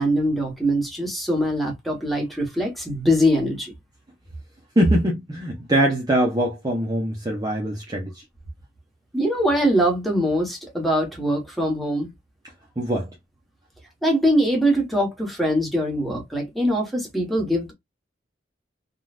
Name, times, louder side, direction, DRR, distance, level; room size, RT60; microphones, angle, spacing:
voice 1, 0.0-3.7 9.1-12.1 14.0-17.7, equal, ahead, 1.2 m, -22 dB
voice 2, 4.8-8.1 12.8-13.1, right 1 dB, 20° right, 0.7 m, -22 dB
3.7 x 2.3 x 2.4 m
head